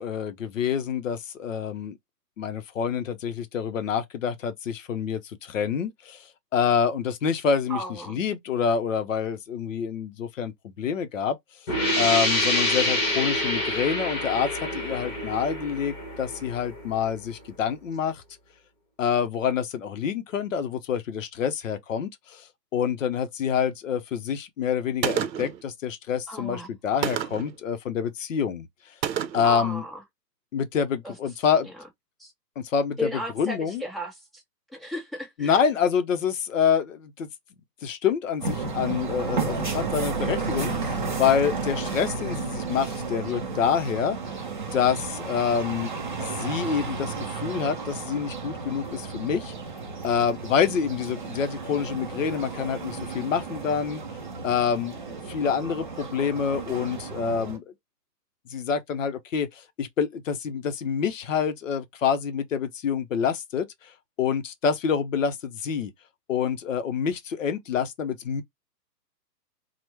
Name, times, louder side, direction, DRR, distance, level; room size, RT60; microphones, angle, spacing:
voice 1, 0.0-2.0 2.4-6.2 6.5-7.8 8.1-11.4 12.0-18.2 19.0-22.5 22.7-28.7 29.3-29.8 30.5-31.7 32.6-33.1 33.4-33.8 35.4-37.3 37.8-44.2 44.7-45.9 46.2-49.5 50.0-54.0 54.4-57.6 58.5-63.7 64.2-65.9 66.3-68.4, left 7 dB, 50° left, 0.6 m, -27 dB
voice 2, 7.7-8.2 26.3-26.7 29.4-30.0 31.0-31.1 31.6-31.7 32.2-32.3 33.0-34.4 34.7-35.6, equal, ahead, 0.7 m, -34 dB
sound 1, 11.7-17.1, left 1 dB, 25° left, 1.1 m, -27 dB
Gunshot gunfire, 25.0-25.6 27.0-27.6 29.0-29.6, right 9 dB, 90° right, 0.6 m, -29 dB
sound 2, 38.4-57.6, right 4 dB, 30° right, 0.4 m, -33 dB
2.9 x 2.1 x 3.2 m
hypercardioid pair, 150°, 50 cm